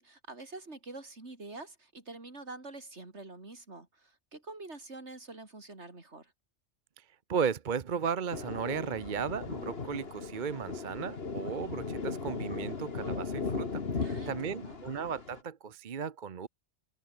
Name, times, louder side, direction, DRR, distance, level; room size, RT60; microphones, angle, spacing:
voice 1, 0.0-6.3 14.0-14.8, right 2 dB, 75° right, 4.0 m, -46 dB
voice 2, 7.0-16.5, right 6 dB, 45° right, 0.9 m, -35 dB
Thunder, 8.3-15.4, left 4 dB, 60° left, 2.0 m, -37 dB
omnidirectional pair, 1.2 m